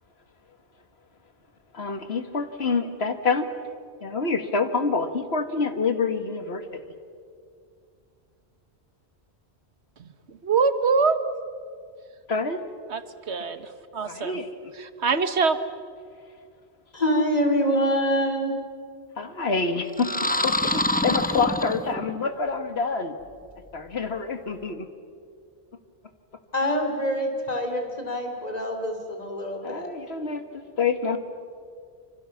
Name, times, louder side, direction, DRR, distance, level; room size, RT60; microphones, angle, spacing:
voice 1, 1.7-3.5 4.0-6.8 12.3-12.6 14.1-14.5 19.2-23.1 23.7-24.9 29.6-31.2, left 4 dB, 70° left, 8 dB, 1.9 m, -27 dB
voice 2, 10.0-11.2 12.9-14.4 14.8-15.6, right 5 dB, 85° right, 11 dB, 1.5 m, -24 dB
voice 3, 16.9-18.5 26.5-29.9, equal, 35° left, 4 dB, 3.2 m, -25 dB
sound 1, 19.9-22.2, left 1 dB, 10° left, 0.8 m, -26 dB
26.0 x 26.0 x 7.2 m, 2.2 s
omnidirectional pair, 1.1 m